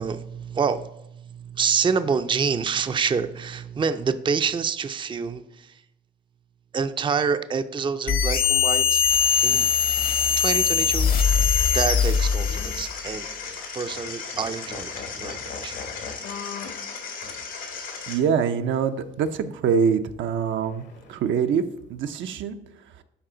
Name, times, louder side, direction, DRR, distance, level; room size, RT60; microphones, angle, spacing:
voice 1, 0.0-5.8 6.7-9.0 9.4-9.7 10.4-11.1 11.7-13.3 13.7-15.8, right 6 dB, 25° right, 10 dB, 0.4 m, -27 dB
sound 1, 8.1-12.9, left 7 dB, 50° left, 0.9 m, -21 dB
sound 2, 9.4-9.6 10.2-13.1 13.5-13.6 13.9-14.1 14.3-16.8 17.2-17.4 20.5-21.5, left 5 dB, 65° left, 1.3 m, -41 dB
sound 3, 11.1-18.1, left 5 dB, 85° left, 2.1 m, -36 dB
voice 2, 18.1-21.6 21.9-22.6, right 6 dB, 75° right, 8 dB, 0.6 m, -24 dB
11.5 x 4.2 x 3.8 m, 0.83 s
cardioid pair, 90°, 20 cm